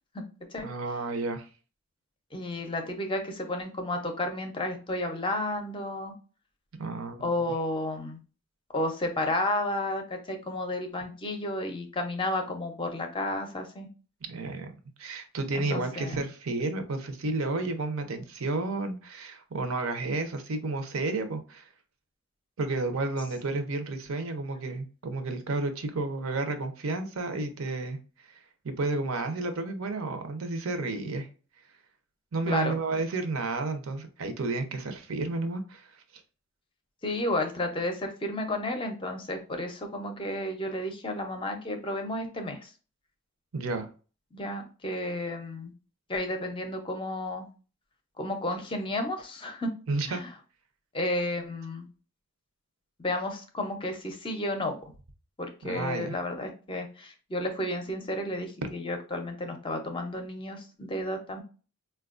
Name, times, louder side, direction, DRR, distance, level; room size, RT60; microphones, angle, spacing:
voice 1, 0.6-1.5 6.8-7.3 14.2-21.7 22.6-28.0 28.2-31.3 32.3-36.0 43.5-43.9 49.9-50.2 55.6-56.1 58.6-58.7, right 3 dB, 70° right, 0.6 m, -31 dB
voice 2, 2.3-6.1 7.2-8.2 8.7-13.9 15.5-16.2 32.5-32.8 37.0-42.7 44.3-45.7 46.1-47.5 48.2-49.7 50.1-50.3 50.9-51.9 53.0-54.8 55.4-61.4, left 1 dB, 25° left, 0.5 m, -32 dB
4.3 x 2.2 x 2.4 m
head